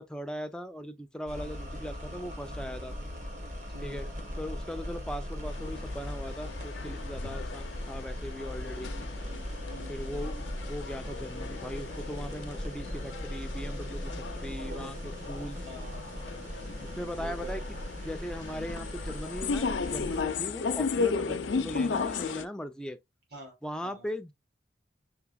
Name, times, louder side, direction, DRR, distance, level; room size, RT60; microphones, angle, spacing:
voice 1, 0.0-2.9 3.8-4.1 4.4-8.9 9.9-15.7 16.8-17.8 18.0-23.0 23.6-24.3, equal, 5° left, 0.4 m, -39 dB
sound 1, 1.3-20.2, equal, 40° right, 1.3 m, -39 dB
voice 2, 3.7-4.1 8.7-10.6 14.6-15.0 15.7-16.3 17.2-17.7 20.9-21.1 21.4-21.6 23.3-23.5 23.8-24.1, right 2 dB, 55° right, 2.7 m, -48 dB
sound 2, 5.5-22.5, left 5 dB, 90° left, 0.5 m, -36 dB
5.9 x 3.3 x 2.3 m
head